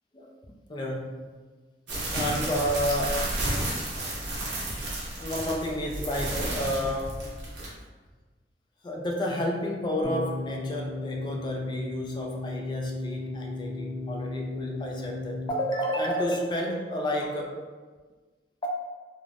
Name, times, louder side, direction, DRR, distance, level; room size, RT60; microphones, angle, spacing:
voice 1, 0.7-1.4 2.1-3.3 5.2-7.4 8.8-17.6 18.6-18.8, equal, 25° left, 0 dB, 0.3 m, -31 dB
sound 1, 1.9-7.7, right 1 dB, 85° right, 0.8 m, -32 dB
sound 2, 10.0-15.5, left 2 dB, 40° right, 1.0 m, -35 dB
3.2 x 2.0 x 2.4 m, 1.4 s
head